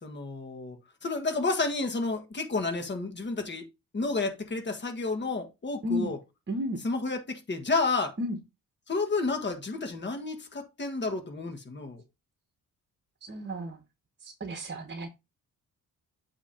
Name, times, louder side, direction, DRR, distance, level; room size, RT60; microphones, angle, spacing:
voice 1, 0.0-3.7 3.9-6.2 6.8-8.2 8.9-12.0, left 3 dB, 30° left, 1.5 m, -31 dB
voice 2, 6.5-6.8 8.2-8.4 13.3-13.8 14.2-15.1, equal, 30° right, 1.0 m, -32 dB
8.1 x 3.0 x 5.1 m
cardioid pair, 115°, 35 cm